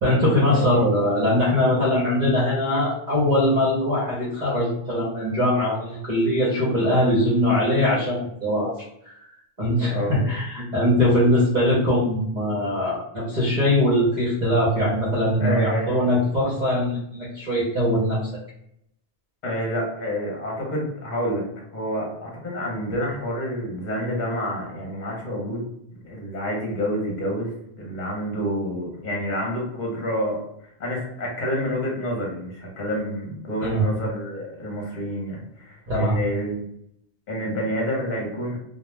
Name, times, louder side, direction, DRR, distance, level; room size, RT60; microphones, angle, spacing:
voice 1, 0.0-8.7 9.0-9.1 9.6-18.3 33.6-33.9 35.9-36.2, left 1 dB, 40° right, -8 dB, 0.8 m, -21 dB
voice 2, 15.4-16.1 19.4-21.4 21.7-25.7 25.9-30.4 30.8-36.7 37.3-38.6, equal, 45° left, -2 dB, 0.9 m, -28 dB
2.3 x 2.2 x 3.1 m, 0.75 s
omnidirectional pair, 1.2 m